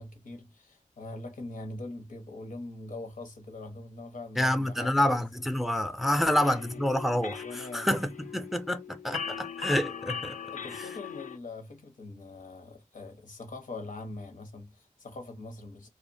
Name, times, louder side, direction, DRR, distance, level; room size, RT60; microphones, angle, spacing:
voice 1, 0.0-5.3 6.2-6.6 7.4-8.0 10.5-15.9, left 2 dB, 85° left, 0.8 m, -43 dB
voice 2, 4.4-10.4, left 1 dB, ahead, 0.3 m, -28 dB
sound 1, 6.2-11.4, left 6 dB, 70° left, 0.4 m, -39 dB
2.7 x 2.1 x 2.5 m
wide cardioid pair, 90°, 13 cm